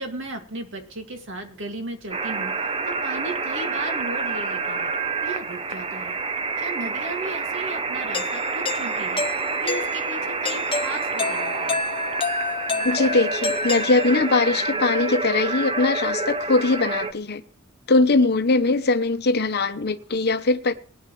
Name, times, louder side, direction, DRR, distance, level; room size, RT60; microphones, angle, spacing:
voice 1, 0.0-4.9 5.2-6.2 6.6-9.3 9.6-11.8, right 2 dB, 65° right, 2.2 m, -35 dB
sound 1, 2.1-17.1, right 3 dB, 25° right, 0.7 m, -28 dB
Doorbell, 8.1-14.5, left 4 dB, 25° left, 0.9 m, -30 dB
voice 2, 12.8-17.4 17.9-20.7, left 3 dB, 50° left, 0.9 m, -21 dB
20.0 x 9.8 x 3.1 m
head